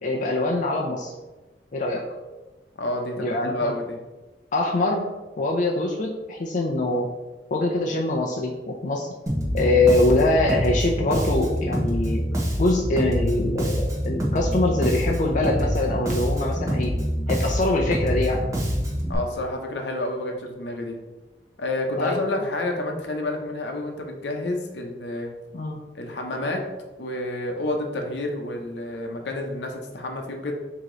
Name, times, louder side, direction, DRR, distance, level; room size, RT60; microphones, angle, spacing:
voice 1, 0.0-1.1 1.7-2.0 3.2-3.7 4.5-5.1 5.4-7.1 7.5-9.1 9.5-12.2 12.6-17.0 17.3-18.4 22.0-22.4 25.5-25.8, left 2 dB, 45° left, -1 dB, 0.4 m, -23 dB
voice 2, 2.8-4.0 19.1-21.0 21.6-25.3 25.9-26.6 27.0-30.5, left 1 dB, 70° left, 3 dB, 0.7 m, -29 dB
Bass guitar, 9.3-19.1, equal, 20° right, 0.8 m, -26 dB
4.7 x 2.9 x 3.8 m, 1.1 s
head